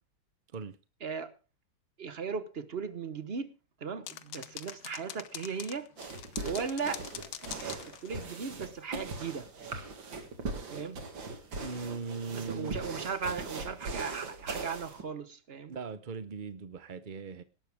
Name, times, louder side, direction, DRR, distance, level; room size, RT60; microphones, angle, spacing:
voice 1, 1.0-1.3 2.0-3.5 3.8-5.9 6.4-7.0 7.4-9.5 10.7-11.0 12.3-15.7, right 6 dB, 40° right, 1.0 m, -37 dB
sound 1, 4.1-8.6, left 11 dB, 85° left, 1.7 m, -44 dB
sound 2, 6.0-15.0, right 3 dB, 80° right, 2.9 m, -40 dB
voice 2, 11.6-12.8 15.7-17.4, right 5 dB, 60° right, 0.5 m, -39 dB
18.0 x 12.0 x 3.5 m
omnidirectional pair, 2.1 m